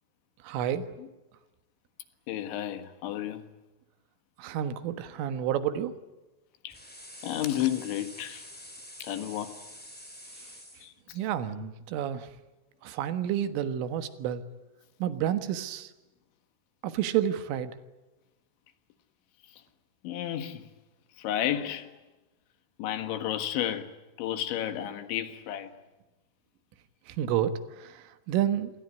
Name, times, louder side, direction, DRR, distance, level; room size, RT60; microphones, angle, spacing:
voice 1, 0.4-0.9 4.4-5.9 11.1-12.3 12.8-14.4 15.0-15.9 16.8-17.7 27.1-28.7, right 10 dB, 80° right, 4.0 m, -30 dB
voice 2, 2.3-3.5 6.6-6.8 7.2-8.5 9.0-9.6 10.8-11.2 19.5-19.6 20.0-20.7 21.2-21.9 22.8-23.9 24.2-25.7, left 11 dB, 70° left, 3.9 m, -32 dB
sound 1, 6.7-10.9, equal, ahead, 2.7 m, -47 dB
27.5 x 21.0 x 9.6 m
omnidirectional pair, 5.7 m